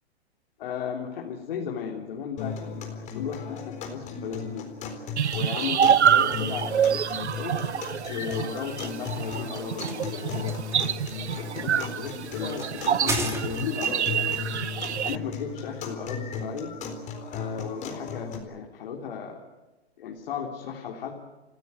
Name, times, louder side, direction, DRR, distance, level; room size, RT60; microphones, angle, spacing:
voice 1, 0.6-4.7 5.3-7.6 8.1-10.7 11.4-14.5 15.0-16.7 17.3-19.4 20.0-21.1, left 7 dB, 55° left, 0 dB, 3.4 m, -35 dB
sound 1, 2.4-18.4, left 5 dB, 20° left, 4.1 m, -36 dB
sound 2, 5.2-15.2, right 9 dB, 85° right, 0.9 m, -26 dB
sound 3, 8.9-13.9, right 2 dB, 10° right, 2.7 m, -36 dB
28.5 x 16.5 x 9.6 m, 1.1 s
hypercardioid pair, 135°, 33 cm